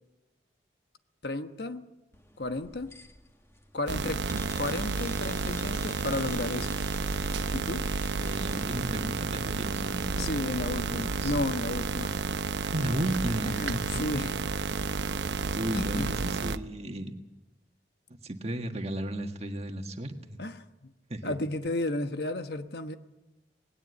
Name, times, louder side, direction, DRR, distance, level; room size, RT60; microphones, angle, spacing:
voice 1, 1.2-1.8 2.4-2.9 3.7-4.2 4.5-6.8 7.5-7.8 10.1-12.2 13.4-14.4 15.7-16.1 20.4-20.9 21.2-23.0, left 2 dB, 65° left, 8 dB, 1.2 m, -33 dB
sound 1, 2.1-9.6, left 2 dB, 15° left, 1.8 m, -50 dB
sound 2, 3.9-16.6, right 4 dB, 90° right, 0.7 m, -31 dB
voice 2, 8.2-10.4 10.9-11.3 12.6-13.8 15.3-17.2 18.2-20.4 21.1-21.3, right 1 dB, 35° right, 5 dB, 1.7 m, -34 dB
20.0 x 18.0 x 8.3 m, 1.0 s
head